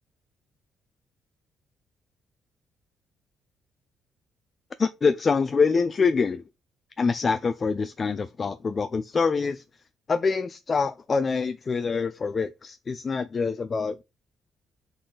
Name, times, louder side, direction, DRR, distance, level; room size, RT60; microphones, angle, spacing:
voice 1, 4.8-6.4 7.0-9.6 10.1-14.0, left 5 dB, 35° left, 0.5 m, -25 dB
6.5 x 4.0 x 3.9 m
cardioid pair, 90°, 0 cm